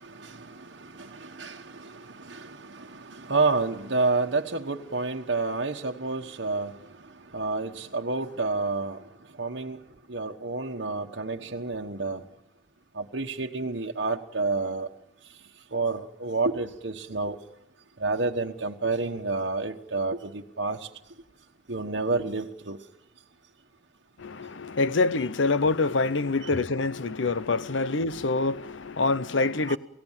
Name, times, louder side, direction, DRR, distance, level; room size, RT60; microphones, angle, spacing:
voice 1, 0.0-6.8 7.3-9.0 9.4-9.8 10.1-12.2 12.9-14.9 15.7-17.4 18.0-20.9 21.7-22.8 29.7-29.8, right 3 dB, 70° right, 1.2 m, -29 dB
voice 2, 24.2-29.8, left 3 dB, 80° left, 0.8 m, -26 dB
29.0 x 16.5 x 7.3 m
head